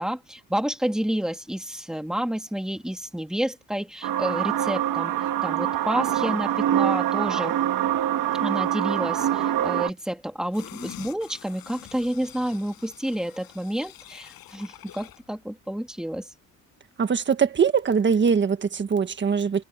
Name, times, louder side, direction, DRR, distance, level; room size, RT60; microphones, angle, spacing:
voice 1, 0.0-5.1 5.4-7.6 8.3-16.3, equal, ahead, 2.1 m, -29 dB
sound 1, 4.0-9.9, right 11 dB, 65° right, 1.9 m, -24 dB
sound 2, 10.5-15.3 15.6-15.7, left 13 dB, 85° left, 7.9 m, -46 dB
voice 2, 17.0-19.6, right 6 dB, 30° right, 1.6 m, -22 dB
cardioid pair, 160°, 35 cm